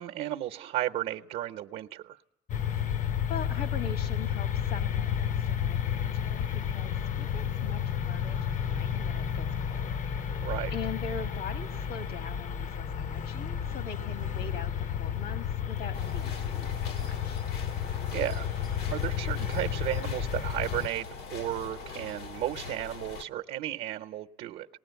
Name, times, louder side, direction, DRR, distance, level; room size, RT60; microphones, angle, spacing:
voice 1, 0.0-2.2 10.4-10.7 17.8-24.7, right 13 dB, 70° right, 0.8 m, -34 dB
sound 1, 2.5-20.9, left 8 dB, 50° left, 0.7 m, -31 dB
voice 2, 2.7-9.9 10.7-17.4, left 5 dB, 70° left, 1.5 m, -42 dB
sound 2, 15.9-23.2, left 4 dB, 90° left, 1.7 m, -42 dB
20.0 x 18.0 x 8.1 m
cardioid pair, 110°, 17 cm